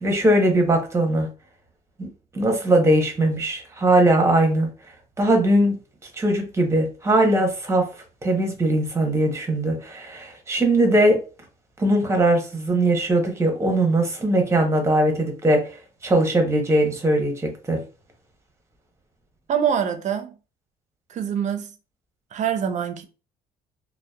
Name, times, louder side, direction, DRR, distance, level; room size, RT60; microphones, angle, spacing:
voice 1, 0.0-1.3 2.0-2.1 2.3-4.7 5.2-5.8 6.2-7.9 8.2-11.2 11.8-15.6 16.0-17.8, right 1 dB, 15° right, 0.8 m, -20 dB
voice 2, 19.5-20.3 21.1-21.7 22.3-23.0, right 8 dB, 45° right, 0.5 m, -24 dB
2.7 x 2.1 x 2.2 m
cardioid pair, 110°, 17 cm